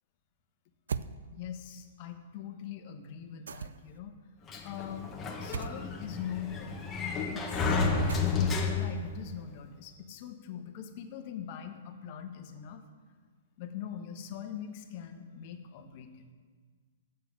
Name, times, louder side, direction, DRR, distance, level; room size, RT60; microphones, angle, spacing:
sound 1, 0.9-1.1 3.5-4.0 5.5-5.8 8.1-8.6, right 6 dB, 85° right, 0.3 m, -37 dB
voice 1, 1.3-4.1 4.6-5.1 5.4-6.8 7.3-7.8 8.3-12.8 13.6-16.2, left 9 dB, 45° left, 5 dB, 1.1 m, -42 dB
Sliding door, 4.5-9.1, left 4 dB, 15° left, 1.3 m, -31 dB
7.5 x 6.7 x 7.3 m, 1.5 s
hypercardioid pair, 130°, 0 cm